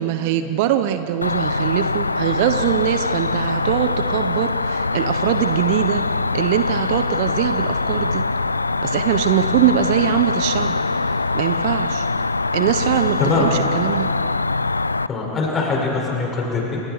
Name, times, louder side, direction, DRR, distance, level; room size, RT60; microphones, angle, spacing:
voice 1, 0.0-6.0 6.3-8.2 8.8-10.8 11.3-12.1 12.5-14.1, right 11 dB, 50° right, 10 dB, 1.0 m, -22 dB
Cricket, 1.2-15.1, left 3 dB, 80° left, 0.4 m, -23 dB
voice 2, 13.2-13.5 15.1-16.8, left 3 dB, 25° left, -2 dB, 6.5 m, -22 dB
29.0 x 26.0 x 4.8 m, 2.9 s
figure-of-eight pair, 90°, 0 cm